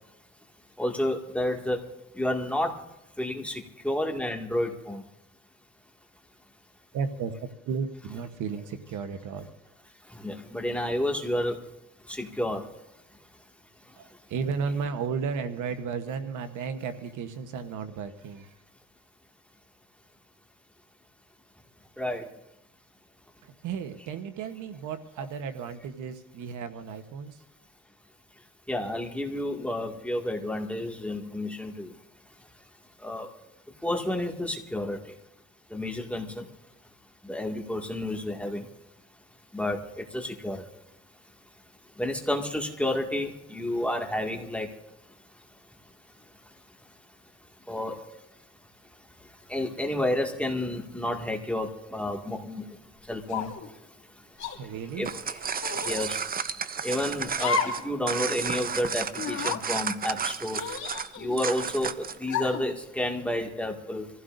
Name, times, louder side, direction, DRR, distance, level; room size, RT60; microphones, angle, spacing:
voice 1, 0.8-2.8 3.2-5.0 10.1-11.7 12.1-12.7 22.0-22.3 28.7-32.0 33.0-33.3 33.8-35.2 35.7-36.5 37.2-38.7 39.5-40.7 42.0-44.7 47.7-48.1 49.2-53.8 54.4-54.5 55.0-55.1 55.8-56.2 56.8-60.6 61.2-64.1, left 1 dB, 5° left, 2 dB, 2.0 m, -30 dB
voice 2, 6.9-9.5 14.0-18.6 23.4-27.4 54.4-55.1, right 6 dB, 85° right, 9 dB, 1.1 m, -34 dB
sound 1, 53.3-53.7 54.4-54.6 55.6-56.0 57.4-57.9 58.2-58.3 59.2-59.6 60.5-61.4 62.3-62.7, left 6 dB, 70° left, 2.9 m, -31 dB
sound 2, 54.9-62.2, right 6 dB, 30° right, 0.6 m, -32 dB
26.0 x 15.5 x 2.6 m, 0.85 s
cardioid pair, 90°, 30 cm